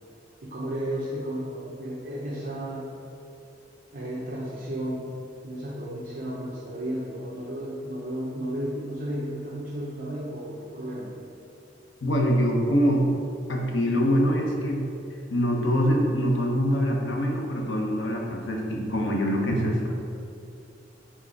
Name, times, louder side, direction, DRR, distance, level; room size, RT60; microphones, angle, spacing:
voice 1, 0.4-2.9 3.9-5.0 5.4-11.1 19.4-19.7, right 1 dB, 50° right, -5 dB, 0.8 m, -33 dB
voice 2, 12.0-13.0 13.5-14.8 15.3-19.9, equal, 70° left, 0 dB, 0.9 m, -24 dB
4.6 x 4.5 x 4.7 m, 2.6 s
head